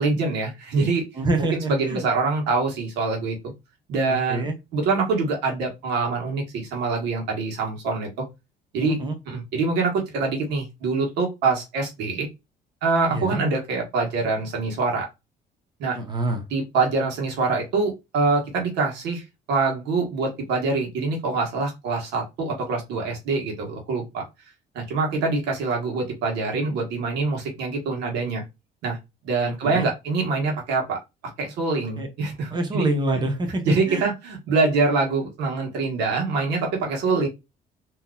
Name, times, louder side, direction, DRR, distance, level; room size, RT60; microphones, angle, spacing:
voice 1, 0.0-1.0 1.5-3.4 3.9-4.5 4.7-8.2 8.7-9.0 9.3-12.3 12.8-15.1 15.8-16.0 16.5-19.2 19.5-24.2 24.7-28.4 28.8-29.0 29.2-31.0 31.4-32.9 33.6-37.3, right 3 dB, 85° right, 1 dB, 1.4 m, -24 dB
voice 2, 1.2-2.0 4.1-4.6 8.8-9.2 13.1-13.4 15.9-16.4 29.6-29.9 32.0-32.1 32.5-34.1, right 2 dB, 25° right, 3 dB, 1.0 m, -26 dB
3.7 x 2.9 x 2.3 m, 0.23 s
cardioid pair, 110°, 17 cm